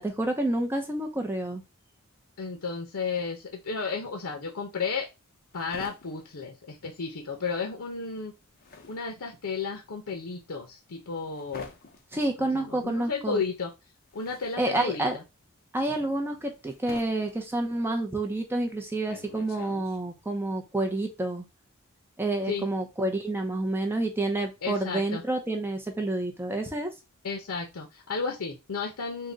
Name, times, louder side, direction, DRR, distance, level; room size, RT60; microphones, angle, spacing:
voice 1, 0.0-1.6 12.1-13.4 14.6-15.2 15.7-21.5 22.2-26.9, right 2 dB, 10° right, 3 dB, 0.5 m, -29 dB
voice 2, 2.4-5.1 5.5-8.3 8.9-11.7 12.4-13.7 14.1-15.2 22.5-22.7 24.6-25.2 27.2-29.3, left 5 dB, 85° left, 2 dB, 0.7 m, -33 dB
sound 1, 4.9-7.4 7.7-20.3, left 3 dB, 45° left, 0.7 m, -49 dB
3.7 x 2.2 x 3.8 m, 0.24 s
head